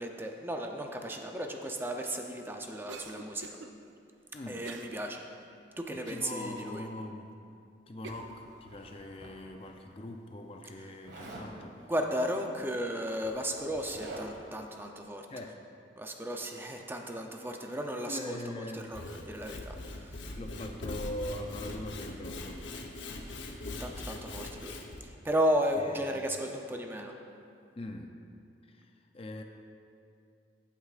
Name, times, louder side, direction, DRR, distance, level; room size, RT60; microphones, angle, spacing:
voice 1, 0.0-3.6 4.5-5.2 5.8-6.9 11.9-15.3 16.0-20.4 23.8-24.8 25.0-27.1, equal, 10° right, 2 dB, 0.6 m, -34 dB
Cough, 2.9-3.7 4.6-5.0 5.4-5.5 6.1-6.7 7.3-7.4 8.0-8.4, right 3 dB, 90° right, 0.5 m, -46 dB
voice 2, 4.3-4.7 5.9-7.3 7.9-11.9 15.3-15.6 18.1-18.9 20.4-23.0 25.8-26.2 27.8-28.2 28.6-29.4, left 1 dB, 30° left, 4 dB, 0.5 m, -42 dB
Zipper (clothing), 8.1-9.7 11.0-11.5 12.7-12.8 13.1-14.5, right 1 dB, 65° right, 1.7 m, -47 dB
Sawing / Wood, 18.8-25.0, left 2 dB, 85° left, 0.8 m, -41 dB
14.5 x 8.2 x 2.5 m, 2.5 s
head